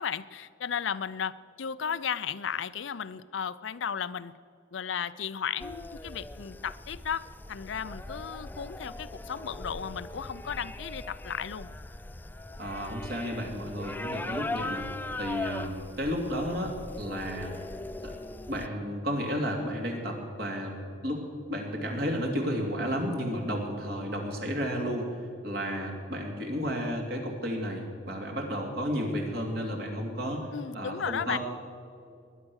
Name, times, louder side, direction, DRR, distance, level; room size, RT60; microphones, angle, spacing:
voice 1, 0.0-4.3 4.7-11.7 30.5-31.4, left 7 dB, 85° left, 15 dB, 0.5 m, -35 dB
sound 1, 5.6-18.7, left 2 dB, 10° left, 0.3 m, -40 dB
voice 2, 12.6-14.9 15.2-17.5 18.0-18.1 18.5-20.8 21.0-21.2 21.5-25.1 25.4-30.5 30.7-31.4, equal, 55° right, 1 dB, 2.9 m, -32 dB
20.5 x 10.0 x 6.4 m, 2.3 s
head